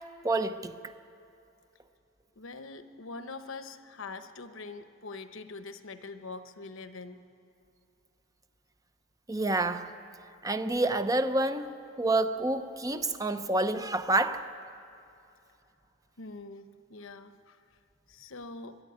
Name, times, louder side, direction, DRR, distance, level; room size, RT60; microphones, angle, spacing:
voice 1, 0.2-0.9 9.3-9.9 10.4-14.5, right 2 dB, 15° right, 0.6 m, -28 dB
voice 2, 2.4-7.2 16.2-17.6 18.1-18.8, left 3 dB, 70° left, 1.0 m, -43 dB
21.5 x 12.5 x 9.6 m
head